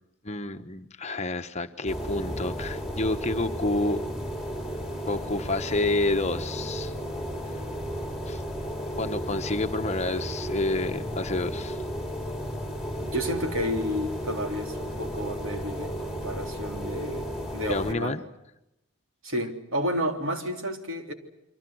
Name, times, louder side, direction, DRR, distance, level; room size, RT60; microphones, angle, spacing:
voice 1, 0.2-4.0 5.1-6.9 8.3-8.4 9.0-11.8 17.7-18.2, left 2 dB, 30° left, 7 dB, 1.2 m, -29 dB
sound 1, 1.9-17.9, equal, ahead, 4.2 m, -34 dB
voice 2, 13.0-18.3 19.2-21.1, equal, 65° right, 5 dB, 3.6 m, -31 dB
29.5 x 24.5 x 6.3 m, 0.86 s
head